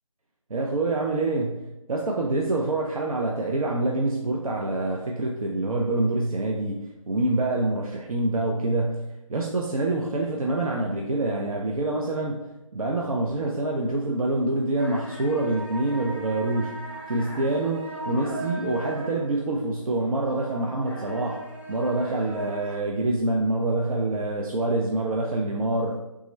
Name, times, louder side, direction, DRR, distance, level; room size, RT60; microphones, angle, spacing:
voice 1, 0.5-12.4 12.7-26.0, right 2 dB, 85° right, 0 dB, 0.5 m, -26 dB
sound 1, 14.8-22.8, right 2 dB, 15° right, 0.4 m, -38 dB
3.6 x 2.0 x 4.1 m, 0.96 s
figure-of-eight pair, 170°, 18 cm